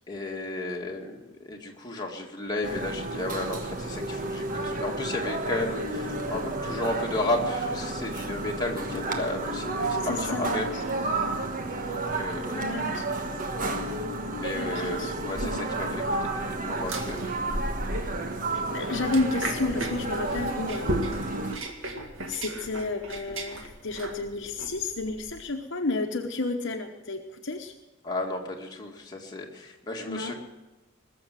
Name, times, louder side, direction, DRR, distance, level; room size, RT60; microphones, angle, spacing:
voice 1, 0.1-10.9 11.9-12.7 14.3-17.3 28.0-30.3, left 2 dB, 20° left, -1 dB, 2.0 m, -33 dB
sound 1, 2.6-21.6, right 2 dB, 40° right, 1.3 m, -31 dB
voice 2, 10.0-10.8 12.6-13.1 14.6-15.1 15.4-15.6 18.5-20.9 21.2-21.5 22.3-27.7 30.1-30.3, left 3 dB, 60° left, 3 dB, 1.1 m, -31 dB
sound 2, 16.8-25.4, right 1 dB, 70° right, 2.0 m, -36 dB
20.5 x 7.1 x 7.6 m, 1.1 s
head